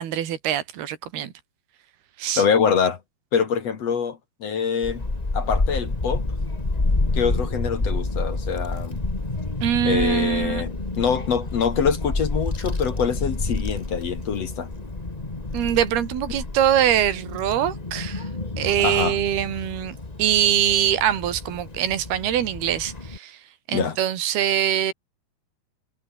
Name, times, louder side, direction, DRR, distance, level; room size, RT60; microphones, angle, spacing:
voice 1, 0.0-1.3 2.2-2.4 9.6-10.6 15.5-18.3 18.6-23.4 23.7-24.9, right 10 dB, 75° right, 4.4 m, -23 dB
voice 2, 2.4-3.0 3.3-5.0 5.3-6.2 7.1-9.0 9.8-14.7 18.8-19.2 23.7-24.0, left 6 dB, 50° left, 2.5 m, -24 dB
Child speech kid speaking / Wind, 4.8-23.2, left 2 dB, 20° left, 1.0 m, -29 dB
omnidirectional pair, 4.5 m